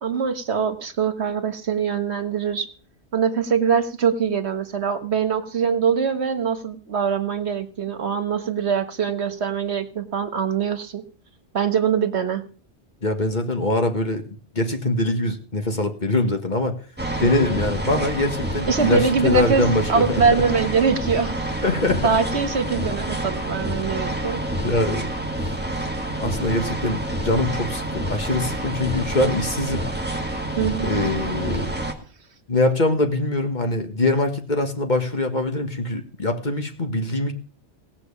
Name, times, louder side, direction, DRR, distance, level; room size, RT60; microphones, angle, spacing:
voice 1, 0.0-2.7 3.1-11.0 11.5-12.4 17.2-17.3 18.7-19.6 19.9-21.3 22.0-24.4 30.6-31.0, right 6 dB, 70° right, 9 dB, 1.6 m, -23 dB
voice 2, 13.0-16.8 17.2-20.2 21.6-22.2 24.6-25.1 26.2-29.9 30.8-31.7 32.5-37.3, left 2 dB, 40° left, 5 dB, 1.8 m, -23 dB
sound 1, 17.0-31.9, right 1 dB, 10° right, 1.8 m, -28 dB
17.5 x 6.1 x 8.4 m, 0.41 s
omnidirectional pair, 1.2 m